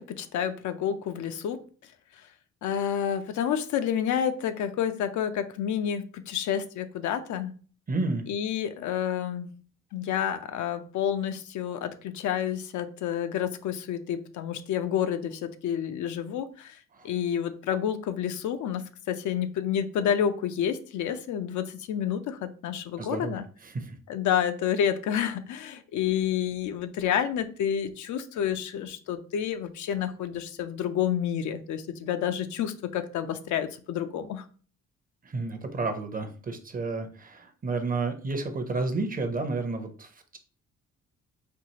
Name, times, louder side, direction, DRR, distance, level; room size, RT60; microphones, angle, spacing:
voice 1, 0.0-1.6 2.6-7.5 8.3-9.5 9.9-16.8 17.0-23.4 24.1-34.5, left 9 dB, 70° left, 9 dB, 0.5 m, -29 dB
voice 2, 7.9-8.3 17.0-17.1 23.0-24.0 35.3-40.4, right 3 dB, 30° right, 7 dB, 0.6 m, -31 dB
4.4 x 2.4 x 2.8 m, 0.40 s
cardioid pair, 90°, 30 cm